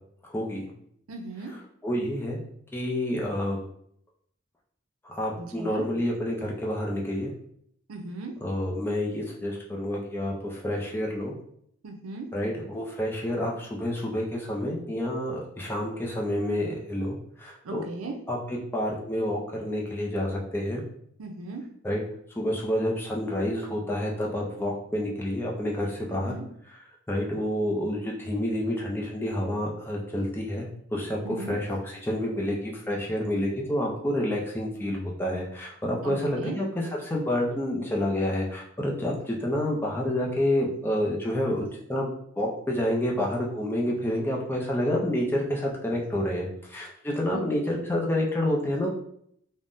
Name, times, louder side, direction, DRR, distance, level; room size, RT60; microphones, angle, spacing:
voice 1, 0.3-0.7 1.8-2.4 2.7-3.6 5.0-7.3 8.4-11.3 12.3-17.8 18.3-20.8 21.8-22.0 22.4-26.3 27.1-42.1 42.4-48.9, left 1 dB, 10° left, -2 dB, 0.4 m, -29 dB
voice 2, 1.1-1.5 5.4-5.9 7.9-8.3 11.8-12.3 17.6-18.1 21.2-21.6 26.1-26.4 31.2-31.6 36.0-36.6 47.3-47.8, right 3 dB, 85° right, 4 dB, 0.5 m, -37 dB
3.5 x 2.1 x 2.5 m, 0.67 s
head